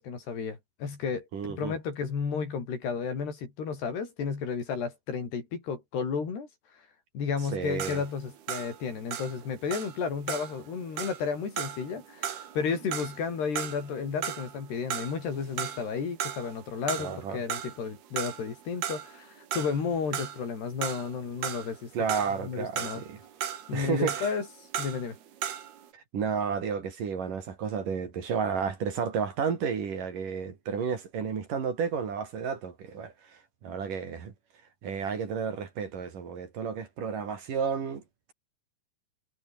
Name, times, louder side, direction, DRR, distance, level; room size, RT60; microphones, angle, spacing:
voice 1, 0.0-6.5 7.1-21.9 22.4-23.0 23.7-24.5 24.8-25.2, left 5 dB, 75° left, 7.4 m, -32 dB
voice 2, 1.3-1.8 7.5-8.0 17.0-17.4 21.9-23.2 23.7-24.3 25.9-34.3 34.8-38.0, right 6 dB, 55° right, 4.5 m, -32 dB
sound 1, 7.6-14.6 14.9-15.9 16.2-17.2 17.5-25.9, right 9 dB, 70° right, 4.3 m, -36 dB
omnidirectional pair, 4.7 m